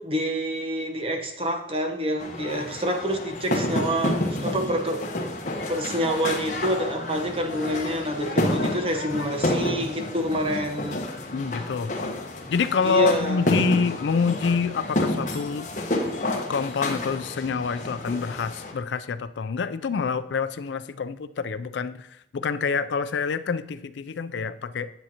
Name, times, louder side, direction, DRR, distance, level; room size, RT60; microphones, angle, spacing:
voice 1, 0.0-5.0 5.7-11.0 12.8-13.4, equal, 30° right, 4 dB, 0.9 m, -27 dB
sound 1, 2.2-18.7, left 1 dB, 45° left, 1.1 m, -29 dB
voice 2, 11.3-11.9 12.5-15.7 16.5-24.9, left 5 dB, 75° left, 12 dB, 0.4 m, -27 dB
10.0 x 7.8 x 2.9 m, 0.88 s
head